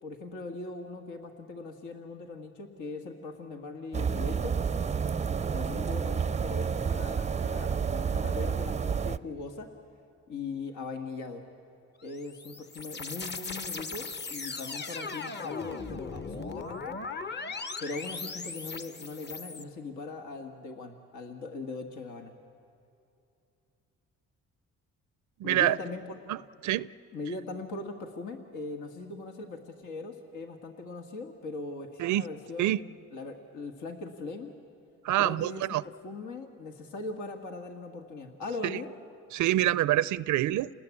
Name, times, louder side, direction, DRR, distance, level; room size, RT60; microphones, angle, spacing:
voice 1, 0.0-4.6 5.5-9.7 10.3-11.5 12.0-17.0 17.8-22.3 25.4-26.2 27.1-34.5 35.2-38.9, left 3 dB, 80° left, 2.0 m, -40 dB
sound 1, 3.9-9.2, right 6 dB, 25° right, 0.5 m, -30 dB
sound 2, 12.0-19.6, left 4 dB, 35° left, 1.2 m, -38 dB
voice 2, 25.4-25.8 26.3-26.4 26.6-26.9 32.0-32.2 32.6-32.8 35.0-35.8 39.3-40.7, right 14 dB, 75° right, 0.5 m, -26 dB
29.0 x 20.0 x 8.5 m
cardioid pair, 90°, 30 cm